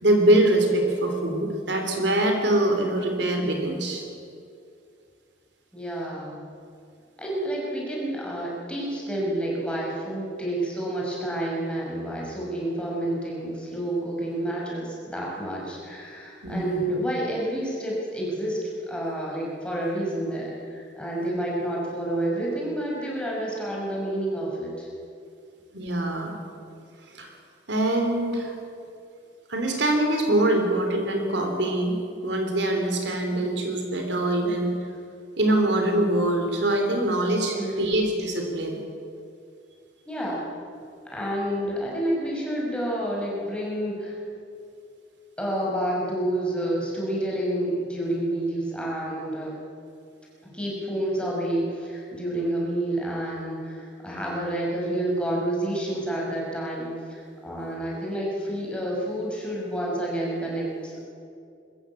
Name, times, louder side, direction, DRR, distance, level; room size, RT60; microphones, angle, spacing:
voice 1, 0.0-4.0 16.4-16.8 25.7-26.3 27.1-27.3 27.7-28.6 29.5-32.0 32.2-34.8 35.4-38.8, right 1 dB, 65° right, 3 dB, 3.4 m, -23 dB
voice 2, 5.7-6.4 7.2-18.6 18.8-24.9 37.6-38.0 40.1-40.5 41.0-44.2 45.4-49.6 50.5-61.1, right 1 dB, 5° left, -4 dB, 5.6 m, -29 dB
22.5 x 14.0 x 8.6 m, 2.4 s
head